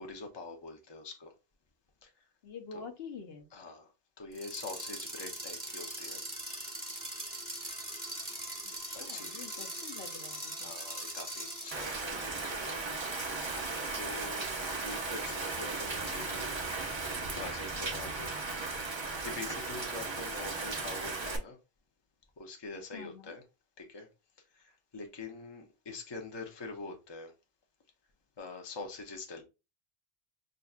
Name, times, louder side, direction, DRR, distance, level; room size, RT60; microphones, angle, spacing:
voice 1, 0.0-1.3 2.0-2.1 2.7-2.9 3.5-3.9 4.2-6.2 8.9-9.6 10.6-12.8 13.9-14.5 14.8-16.6 17.0-18.3 18.8-21.6 22.4-23.4 23.8-24.1 24.6-27.3 28.4-29.4, left 3 dB, 30° left, 0.7 m, -45 dB
voice 2, 2.4-3.5 8.8-10.7 22.9-23.4, left 6 dB, 75° left, 0.9 m, -47 dB
sound 1, 4.3-12.2, right 1 dB, 15° right, 1.3 m, -41 dB
Rain, 11.7-21.4, right 3 dB, 30° right, 0.6 m, -36 dB
5.5 x 2.6 x 2.4 m
omnidirectional pair, 1.0 m